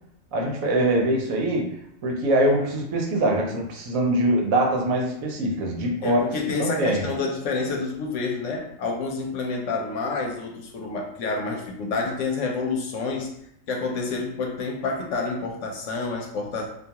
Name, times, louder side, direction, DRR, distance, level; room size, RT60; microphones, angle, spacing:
voice 1, 0.3-1.8 2.0-6.2 6.6-7.1, right 1 dB, 85° right, 1 dB, 1.1 m, -23 dB
voice 2, 6.0-13.3 13.7-16.7, left 3 dB, 70° left, 1 dB, 0.9 m, -28 dB
2.5 x 2.3 x 2.8 m, 0.73 s
omnidirectional pair, 1.4 m